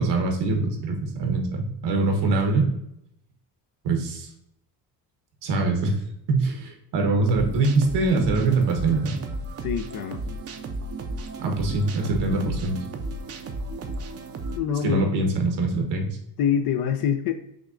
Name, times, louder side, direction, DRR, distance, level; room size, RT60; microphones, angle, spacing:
voice 1, 0.0-2.7 3.8-4.3 5.4-6.0 6.3-9.2 11.4-12.8 14.8-16.1, right 3 dB, 75° right, 3 dB, 1.1 m, -23 dB
sound 1, 7.3-14.6, right 2 dB, 35° right, 0.5 m, -34 dB
voice 2, 9.6-10.2 14.5-15.1 16.4-17.3, left 8 dB, 60° left, 8 dB, 0.5 m, -25 dB
6.2 x 2.3 x 2.5 m, 0.77 s
cardioid pair, 90°, 42 cm